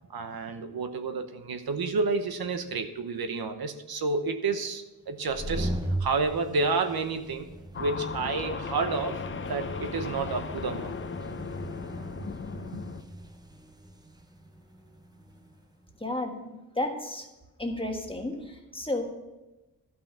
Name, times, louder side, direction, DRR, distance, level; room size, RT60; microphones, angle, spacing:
voice 1, 0.1-7.5 7.8-9.2 9.5-11.0 12.7-12.8, right 4 dB, 70° right, 8 dB, 1.0 m, -30 dB
sound 1, 5.1-15.6, right 1 dB, 10° right, 0.7 m, -39 dB
sound 2, 7.7-13.0, left 5 dB, 35° left, 0.5 m, -37 dB
voice 2, 16.0-17.3 17.6-19.0, left 1 dB, 15° left, 2 dB, 1.5 m, -32 dB
12.0 x 5.5 x 6.8 m, 1.0 s
wide cardioid pair, 100°, 38 cm